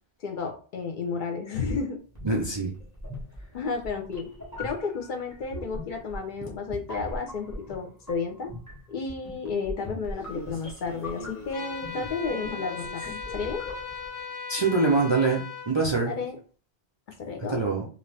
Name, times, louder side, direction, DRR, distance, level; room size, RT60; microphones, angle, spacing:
voice 1, 0.2-2.0 3.5-4.3 4.6-8.5 8.9-13.6 16.1-16.4 17.2-17.6, left 4 dB, 60° left, 3 dB, 0.6 m, -32 dB
sound 1, 2.1-14.2, left 1 dB, 15° left, 1.0 m, -41 dB
voice 2, 2.2-2.7 14.5-16.1 17.5-17.9, right 3 dB, 40° right, -2 dB, 0.4 m, -24 dB
Male speech man speaking, 10.1-13.2 14.6-15.2, equal, 15° right, 0.7 m, -43 dB
sound 2, 11.5-15.7, left 5 dB, 75° left, 1.3 m, -38 dB
2.5 x 2.5 x 3.2 m, 0.39 s
omnidirectional pair, 1.0 m